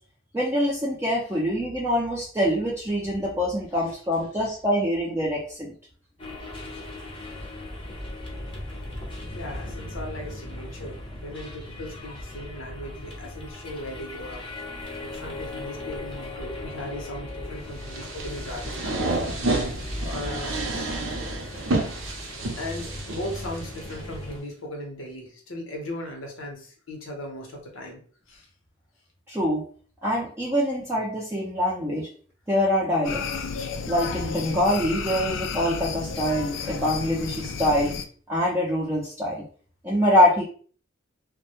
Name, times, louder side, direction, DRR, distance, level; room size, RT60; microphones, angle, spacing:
voice 1, 0.3-5.7 29.3-29.6 30.0-32.1 32.5-33.2 33.9-37.9 38.3-39.4 39.8-40.4, equal, 15° right, -5 dB, 0.4 m, -24 dB
sound 1, 6.2-24.4, left 1 dB, 25° left, 0.6 m, -37 dB
voice 2, 7.8-8.8 9.3-14.4 15.0-19.0 20.0-20.6 22.6-28.0 28.3-28.5, left 1 dB, 85° left, 1 dB, 0.8 m, -38 dB
sound 2, 17.8-23.9, right 2 dB, 85° right, 0.6 m, -30 dB
sound 3, 33.0-38.1, left 5 dB, 70° left, 0.3 m, -32 dB
2.1 x 2.0 x 2.8 m, 0.43 s
head